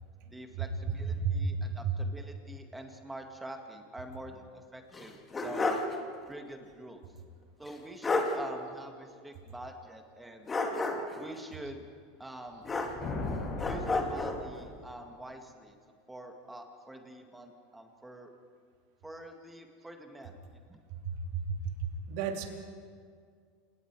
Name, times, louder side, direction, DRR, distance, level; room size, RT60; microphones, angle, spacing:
voice 1, 0.3-5.8 6.3-7.0 7.6-10.5 11.1-11.9 12.2-12.6 13.7-15.8 16.1-18.3 19.0-20.8, right 1 dB, 10° right, 4 dB, 2.0 m, -46 dB
voice 2, 1.1-1.9 21.0-22.5, right 5 dB, 65° right, 2 dB, 3.0 m, -33 dB
sound 1, 4.9-6.0 6.3-6.4 7.7-7.8 8.0-8.4 10.5-11.2 12.6-13.3 13.6-14.4, left 3 dB, 20° left, 2.5 m, -31 dB
sound 2, 12.6-15.1, left 2 dB, 35° left, 7.0 m, -38 dB
28.0 x 19.0 x 4.8 m, 2.1 s
supercardioid pair, 120°, 0 cm